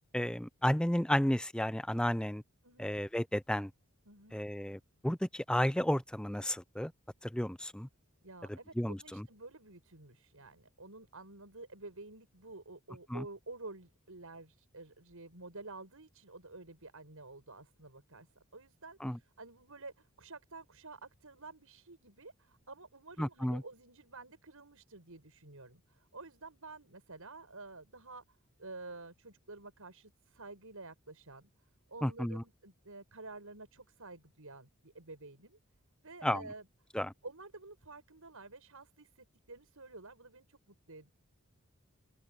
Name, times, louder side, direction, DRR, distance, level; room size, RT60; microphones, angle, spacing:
voice 1, 0.1-2.4 2.8-3.7 4.3-6.9 7.2-7.9 8.5-9.3 13.1-13.2 19.0-19.2 23.2-23.6 32.0-32.4 36.2-36.4 36.9-37.1, equal, 5° left, 0.5 m, -32 dB
voice 2, 2.6-2.9 4.0-4.4 8.2-18.3 18.5-28.2 28.6-31.5 31.9-35.6 36.0-36.7 37.2-41.1, right 3 dB, 90° right, 6.4 m, -50 dB
open air
head